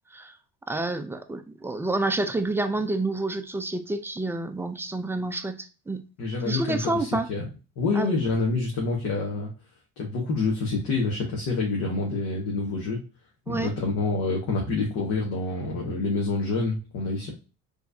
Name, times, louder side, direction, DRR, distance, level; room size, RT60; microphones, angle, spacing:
voice 1, 0.7-6.0 6.5-7.3 7.9-8.1 13.5-13.7, right 2 dB, 10° right, 8 dB, 0.4 m, -28 dB
voice 2, 6.2-7.4 7.8-9.5 10.0-13.0 13.5-17.3, left 3 dB, 55° left, -2 dB, 1.4 m, -27 dB
4.5 x 3.3 x 2.6 m, 0.32 s
cardioid pair, 130°, 31 cm